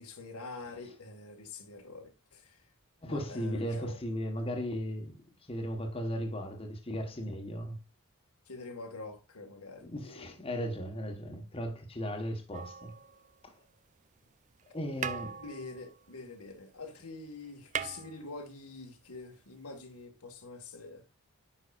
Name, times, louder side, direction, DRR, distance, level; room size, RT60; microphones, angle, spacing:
voice 1, 0.0-2.7 3.1-4.0 8.5-10.4 15.4-21.0, left 3 dB, 90° left, 1.8 m, -46 dB
voice 2, 3.0-5.2 5.5-7.8 9.9-12.9 13.4-13.5 14.6-15.4, equal, 25° left, 1.2 m, -36 dB
sound 1, 12.5-13.7 14.6-14.7 15.0-16.9 17.1-17.2 17.5-18.8 20.0-20.1, right 7 dB, 35° right, 0.4 m, -40 dB
9.6 x 5.7 x 2.4 m
head